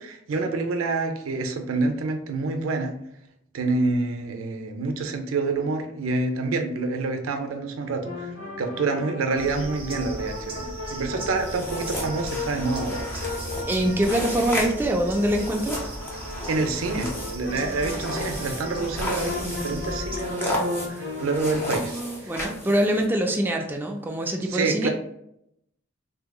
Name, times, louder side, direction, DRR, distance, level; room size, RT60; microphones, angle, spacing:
voice 1, 0.0-3.0 3.5-8.3 8.6-13.1 16.5-22.0 24.5-24.9, right 3 dB, 85° right, 6 dB, 0.5 m, -27 dB
sound 1, 8.0-21.8, left 3 dB, 65° left, 0.8 m, -36 dB
sound 2, 9.4-20.2, right 1 dB, 30° right, 0.8 m, -38 dB
sound 3, 11.4-23.0, left 1 dB, 10° left, 0.7 m, -34 dB
voice 2, 13.7-15.8 21.8-24.9, right 1 dB, 10° right, 2 dB, 0.3 m, -24 dB
3.6 x 2.7 x 2.2 m, 0.76 s
head